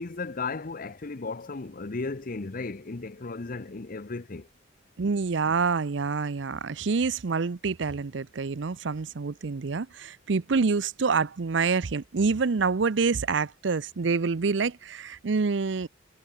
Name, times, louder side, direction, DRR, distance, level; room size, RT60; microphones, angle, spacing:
voice 1, 0.0-4.5, left 3 dB, 50° left, 0.8 m, -35 dB
voice 2, 5.0-15.9, right 4 dB, 75° right, 0.6 m, -27 dB
head